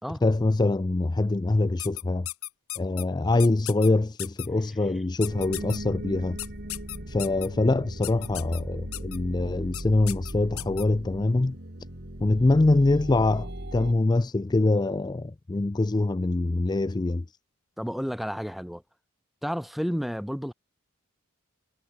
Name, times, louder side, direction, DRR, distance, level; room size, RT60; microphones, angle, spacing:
voice 1, 0.2-2.3 2.8-6.4 7.1-11.6 12.2-17.2, left 2 dB, 20° left, 0.4 m, -24 dB
sound 1, 1.8-3.0 3.4-3.9 4.2-4.5 5.2-5.8 6.4-7.5 8.0-8.6 8.9-9.2 9.7-9.8 10.1-10.8, left 17 dB, 75° left, 1.0 m, -35 dB
sound 2, 5.2-13.9, right 1 dB, 50° right, 3.3 m, -38 dB
voice 2, 17.8-18.8 19.4-20.5, equal, ahead, 2.8 m, -31 dB
head